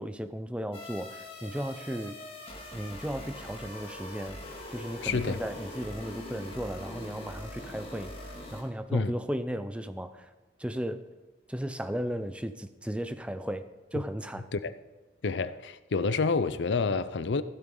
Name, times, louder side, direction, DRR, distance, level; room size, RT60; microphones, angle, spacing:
voice 1, 0.0-2.2 2.7-4.4 4.7-10.3 10.6-11.1 11.5-14.5, equal, 5° right, 0.5 m, -35 dB
sound 1, 0.7-8.6, left 1 dB, 30° left, 2.2 m, -42 dB
voice 2, 5.0-5.4 8.9-9.2 14.5-14.7 15.2-17.4, left 4 dB, 70° left, 0.5 m, -28 dB
15.0 x 12.5 x 3.9 m
head